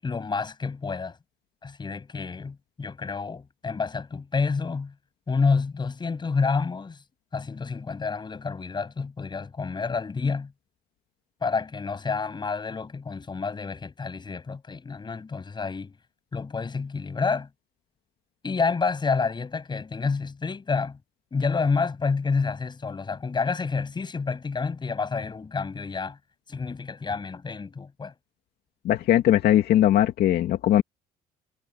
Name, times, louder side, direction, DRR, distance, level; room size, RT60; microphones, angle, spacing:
voice 1, 0.0-1.2 1.6-4.9 5.3-7.0 7.3-10.5 11.4-16.0 16.3-17.5 18.4-21.0 21.3-26.2 26.5-28.1, left 4 dB, 25° left, 7.2 m, -29 dB
voice 2, 28.8-30.8, left 12 dB, 70° left, 2.4 m, -20 dB
cardioid pair, 110°, 17 cm